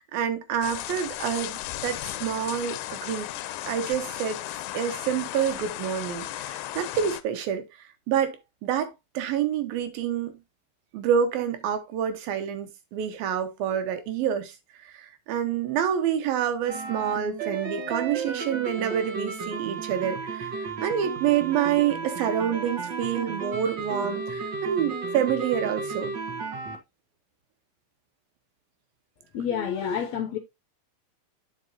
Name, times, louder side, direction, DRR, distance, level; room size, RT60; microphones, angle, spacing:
voice 1, 0.0-3.3 3.7-4.4 4.7-7.6 8.1-10.4 10.9-14.5 14.8-26.2, right 9 dB, 90° right, 3.1 m, -27 dB
sound 1, 0.6-7.2, left 14 dB, 85° left, 2.4 m, -35 dB
sound 2, 16.7-26.8, right 4 dB, 50° right, 1.4 m, -33 dB
voice 2, 29.3-30.4, left 8 dB, 70° left, 1.7 m, -28 dB
9.6 x 6.2 x 2.8 m
omnidirectional pair, 4.1 m